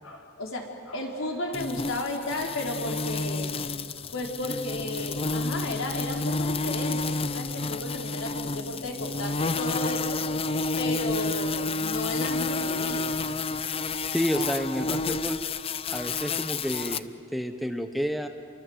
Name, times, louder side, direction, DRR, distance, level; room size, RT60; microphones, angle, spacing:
voice 1, 0.0-3.5 4.1-10.2 10.8-13.2, left 1 dB, 75° left, 1 dB, 4.2 m, -34 dB
sound 1, 1.5-17.0, left 3 dB, 25° left, 0.5 m, -30 dB
voice 2, 14.1-15.4 15.9-18.3, equal, ahead, 7 dB, 1.0 m, -30 dB
28.5 x 24.0 x 8.1 m, 2.5 s
head